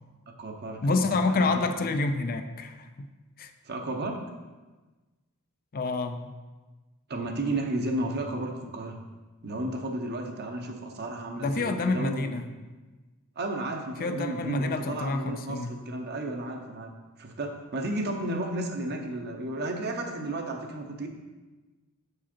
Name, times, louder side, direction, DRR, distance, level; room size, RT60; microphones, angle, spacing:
voice 1, 0.3-1.6 3.6-4.2 7.1-9.0 9.4-12.4 13.4-16.9 17.2-21.1, right 2 dB, 45° right, 3 dB, 0.8 m, -33 dB
voice 2, 0.8-3.1 3.4-3.5 5.7-6.3 11.4-12.5 14.0-15.7, left 3 dB, 40° left, 8 dB, 0.4 m, -28 dB
6.8 x 4.9 x 4.4 m, 1.2 s
head